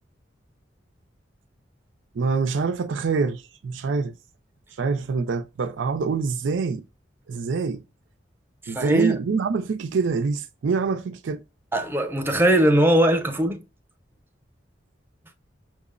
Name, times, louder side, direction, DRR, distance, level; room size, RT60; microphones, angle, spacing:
voice 1, 2.1-4.1 4.8-6.8 7.3-7.8 8.7-11.4, right 4 dB, 85° right, 0.4 m, -25 dB
voice 2, 8.6-9.2 11.7-13.6, right 1 dB, 10° right, 0.6 m, -20 dB
5.9 x 2.0 x 2.4 m
head